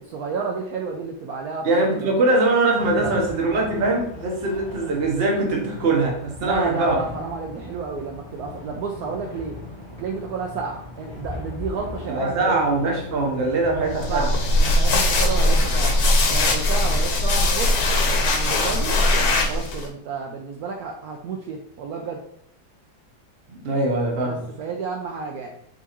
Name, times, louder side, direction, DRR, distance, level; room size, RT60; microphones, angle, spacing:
voice 1, 0.1-2.2 3.0-3.3 6.4-9.6 10.0-12.7 13.7-16.0 16.3-17.8 18.1-19.0 19.2-22.2 24.2-25.5, right 4 dB, 70° right, 1 dB, 1.0 m, -31 dB
voice 2, 1.6-7.0 12.1-14.2 23.5-24.4, right 2 dB, 40° right, 0 dB, 1.1 m, -22 dB
sound 1, 2.7-17.1, left 2 dB, 30° left, 0.5 m, -38 dB
sound 2, 13.9-19.9, left 1 dB, 70° left, 1.2 m, -20 dB
4.5 x 4.0 x 3.0 m, 0.71 s
omnidirectional pair, 1.8 m